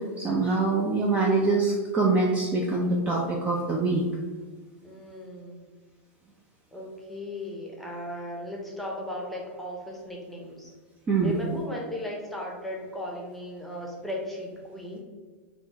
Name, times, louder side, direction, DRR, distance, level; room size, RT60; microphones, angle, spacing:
voice 1, 0.0-4.1 11.1-11.4, right 3 dB, 20° right, -2 dB, 0.5 m, -24 dB
voice 2, 4.8-5.7 6.7-10.7 11.2-15.0, left 1 dB, 5° left, -2 dB, 0.8 m, -36 dB
4.3 x 2.3 x 4.0 m, 1.4 s
hypercardioid pair, 135°, 7 cm